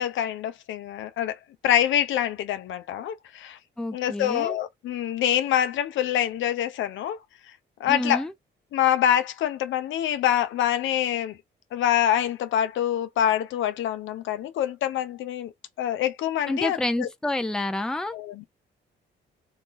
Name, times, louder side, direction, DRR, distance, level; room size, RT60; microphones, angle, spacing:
voice 1, 0.0-3.6 3.9-7.2 7.5-7.6 7.8-8.3 8.7-11.4 11.7-15.5 15.8-17.1 18.1-18.4, left 10 dB, 75° left, 0.6 m, -25 dB
voice 2, 3.8-4.5 7.9-8.3 16.5-18.2, left 1 dB, 5° left, 0.5 m, -28 dB
3.0 x 2.3 x 3.8 m
cardioid pair, 90°, 20 cm